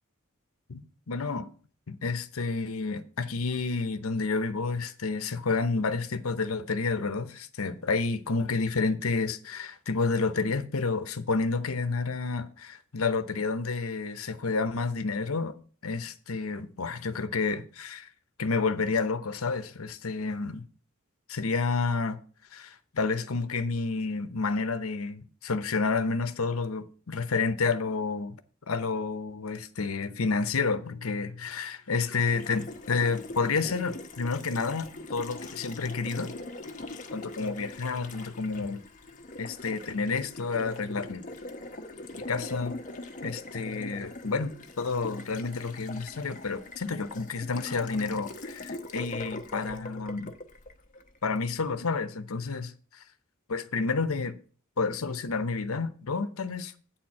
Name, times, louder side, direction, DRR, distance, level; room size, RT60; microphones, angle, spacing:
voice 1, 1.1-1.5 1.9-15.6 15.8-18.1 18.4-20.6 21.3-22.2 22.5-28.4 28.7-36.3 37.1-38.8 39.4-41.2 42.3-42.8 43.2-50.3 51.2-53.0 53.5-54.4 54.8-56.7, left 4 dB, 80° left, 0.8 m, -30 dB
Water tap faucet, 32.3-51.4, left 2 dB, 40° left, 1.0 m, -42 dB
9.1 x 4.5 x 7.5 m
head